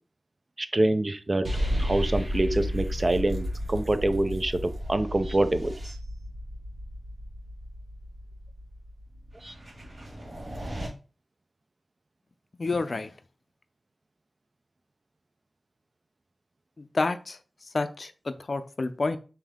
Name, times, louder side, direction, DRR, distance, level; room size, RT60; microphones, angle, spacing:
voice 1, 0.6-1.5 1.8-5.7, right 2 dB, 35° right, 10 dB, 0.5 m, -25 dB
sound 1, 1.4-10.9, equal, 60° right, 1.9 m, -33 dB
voice 2, 12.6-13.1 16.8-19.2, left 3 dB, 55° left, 11 dB, 0.4 m, -29 dB
5.2 x 2.7 x 3.6 m, 0.35 s
wide cardioid pair, 65°, 0 cm